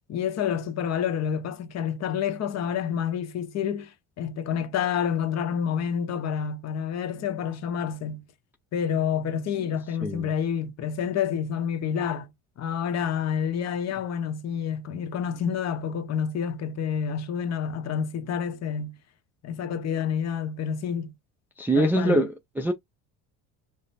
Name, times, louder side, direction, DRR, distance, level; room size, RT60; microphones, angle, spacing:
voice 1, 0.1-8.2 8.7-12.3 12.6-19.0 19.4-21.1 21.7-22.2, left 8 dB, 45° left, 0.9 m, -28 dB
voice 2, 21.6-22.7, right 1 dB, 5° right, 0.4 m, -24 dB
5.0 x 2.1 x 4.0 m
cardioid pair, 140°, 38 cm